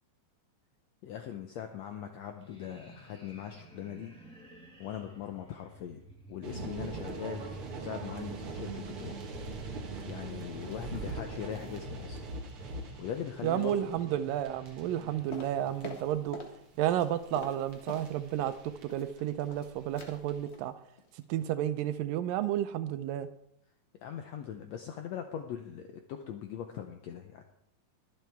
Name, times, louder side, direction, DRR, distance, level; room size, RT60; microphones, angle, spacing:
voice 1, 1.0-4.2 4.8-6.0 6.3-9.2 10.0-12.2 13.0-13.9 15.0-15.2 24.0-27.4, left 9 dB, 85° left, 6 dB, 1.5 m, -41 dB
sound 1, 2.4-15.9, right 1 dB, ahead, 1.3 m, -52 dB
sound 2, 6.4-20.4, right 3 dB, 50° right, 1.9 m, -42 dB
voice 2, 13.4-16.4 16.8-20.7 21.3-23.3, right 11 dB, 90° right, 11 dB, 2.4 m, -31 dB
sound 3, 15.3-16.6 16.8-18.6 18.9-19.7 19.9-20.2 20.5-20.7 21.0-21.2 21.5-21.6, left 2 dB, 45° left, 0.8 m, -45 dB
23.0 x 7.6 x 3.5 m, 0.77 s
omnidirectional pair, 3.9 m